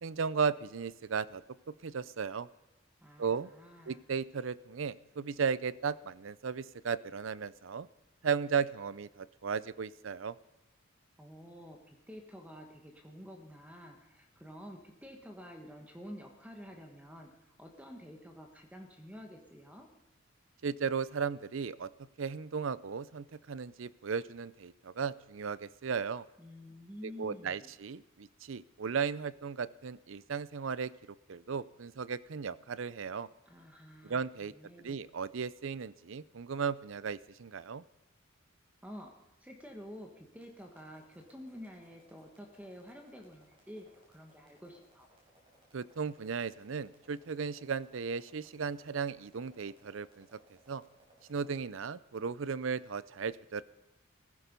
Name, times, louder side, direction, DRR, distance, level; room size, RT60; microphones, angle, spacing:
voice 1, 0.0-1.4 1.8-2.5 3.2-3.5 3.9-7.9 8.2-10.3 20.6-21.9 22.2-26.2 27.0-30.9 31.3-33.3 34.0-34.5 34.8-37.8 45.7-50.3 50.7-50.8 51.3-53.6, right 6 dB, 70° right, 18 dB, 0.5 m, -35 dB
voice 2, 3.0-4.0 11.2-19.9 26.4-27.7 33.5-35.0 38.8-39.1 39.4-45.1, equal, 5° right, 3 dB, 1.4 m, -49 dB
sound 1, 40.2-51.5, right 1 dB, 25° right, 5.9 m, -66 dB
16.0 x 14.5 x 5.3 m, 1.0 s
head